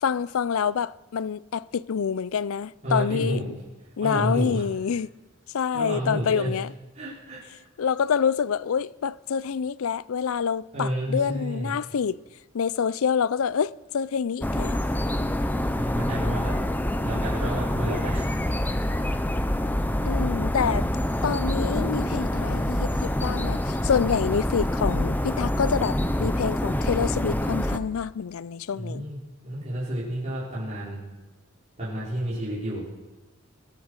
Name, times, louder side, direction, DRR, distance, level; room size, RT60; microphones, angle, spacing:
voice 1, 0.0-3.4 4.0-5.1 5.5-6.7 7.8-12.2 12.5-14.8 20.0-20.9 21.2-29.1, left 7 dB, 75° left, 0.4 m, -27 dB
voice 2, 2.8-3.5 4.0-4.6 5.7-6.5 6.9-7.4 10.7-11.7 15.7-16.6 17.0-18.6 28.7-29.2 29.4-31.0 31.8-32.8, right 1 dB, 35° right, 4.9 m, -30 dB
sound 1, 14.4-27.8, left 1 dB, 10° left, 0.7 m, -26 dB
22.5 x 8.7 x 6.6 m
head